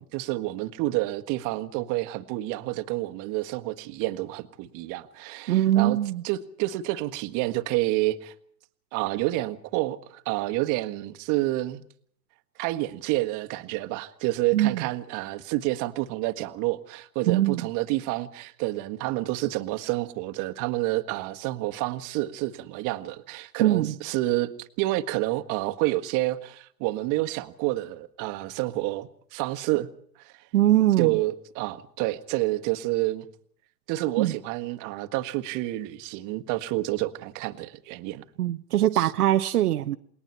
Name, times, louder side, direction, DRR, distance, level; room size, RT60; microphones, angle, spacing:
voice 1, 0.0-6.0 6.2-8.3 8.9-11.8 12.6-29.9 30.2-30.3 31.0-33.3 33.9-38.2 38.9-39.1, right 18 dB, 40° right, 1.6 m, -29 dB
voice 2, 5.5-6.2 14.5-14.8 17.3-17.6 23.6-23.9 30.5-31.1 34.2-34.3 38.4-40.0, right 13 dB, 70° right, 1.0 m, -22 dB
28.5 x 21.0 x 4.5 m
hypercardioid pair, 115°, 48 cm